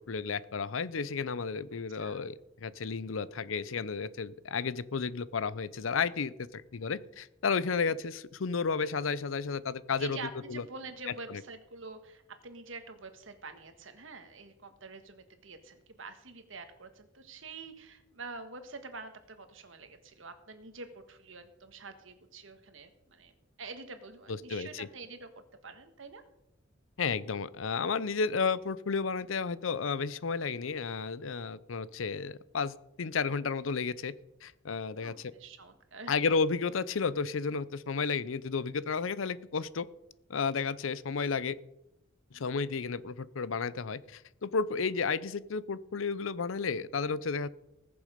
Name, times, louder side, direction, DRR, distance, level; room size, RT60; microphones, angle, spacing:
voice 1, 0.1-10.6 11.3-11.4 24.3-24.9 27.0-34.1 34.4-35.3 36.1-39.9 40.3-41.6 42.3-47.5, left 5 dB, 90° left, 18 dB, 0.6 m, -32 dB
voice 2, 10.0-23.3 23.6-25.3 25.6-26.2 35.0-36.1 42.3-42.5, right 4 dB, 80° right, 8 dB, 1.6 m, -46 dB
19.5 x 7.0 x 5.1 m, 0.87 s
head